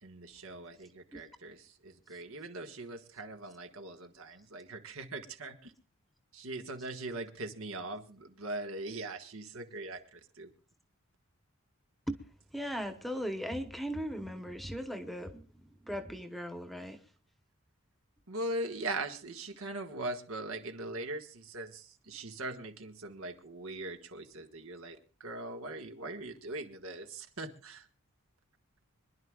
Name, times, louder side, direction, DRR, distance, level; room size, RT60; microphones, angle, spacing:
voice 1, 0.0-5.7 6.3-10.5 18.3-27.9, right 2 dB, 75° right, 6 dB, 1.7 m, -41 dB
voice 2, 12.5-17.0, equal, ahead, 8 dB, 1.0 m, -38 dB
26.0 x 11.0 x 2.4 m, 0.38 s
head